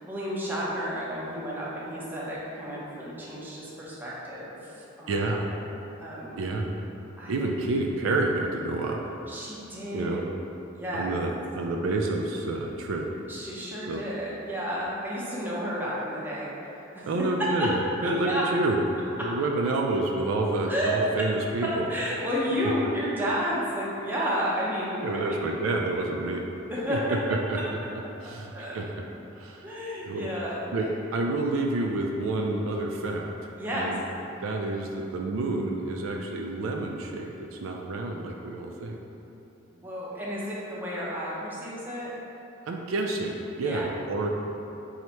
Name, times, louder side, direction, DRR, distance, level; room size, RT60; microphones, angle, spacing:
voice 1, 0.0-5.2 6.0-6.4 7.2-7.5 9.3-10.2 10.7-11.1 13.3-17.3 17.6-17.7 18.0-18.4 19.2-19.3 20.7-21.0 21.6-25.4 26.7-27.9 28.5-28.8 29.6-30.6 33.6-33.9 39.7-42.1 43.6-43.9, equal, 10° right, -7 dB, 0.7 m, -31 dB
voice 2, 5.1-5.5 6.4-6.7 7.3-9.0 9.9-10.2 10.9-13.1 13.9-14.0 17.1-17.8 18.0-18.8 19.2-21.9 25.0-26.5 26.9-27.0 27.3-27.6 28.2-28.9 29.4-29.7 30.0-30.3 30.7-33.3 33.7-34.0 34.4-39.0 42.7-44.3, right 2 dB, 70° right, 1 dB, 0.3 m, -29 dB
3.1 x 2.8 x 4.4 m, 2.9 s
head